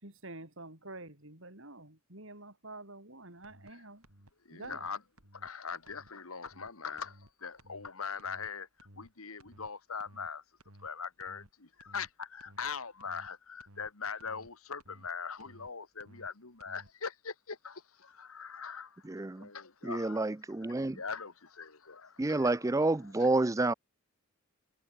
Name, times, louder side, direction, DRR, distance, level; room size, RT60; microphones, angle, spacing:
voice 1, 0.0-4.0 4.5-4.9, right 2 dB, 60° right, 6.6 m, -48 dB
sound 1, 3.4-3.7 4.0-4.3 4.6-4.9 5.2-5.5 5.8-6.1 6.4-6.7 7.0-7.3 7.6-7.9 8.2-8.5 8.8-9.1 9.4-9.7 10.0-10.3 10.6-10.9 11.2-11.5 11.8-12.1 12.4-12.7 13.0-13.3 13.6-13.9 14.2-14.5 14.8-15.1 15.4-15.7 16.0-16.3 16.6-16.9, right 1 dB, 90° right, 7.3 m, -57 dB
voice 2, 4.5-5.0 5.3-10.4 10.8-20.2 20.6-23.4, left 5 dB, 80° left, 2.1 m, -42 dB
voice 3, 19.0-19.5 19.8-21.0 22.2-23.7, right 2 dB, 15° right, 0.4 m, -29 dB
head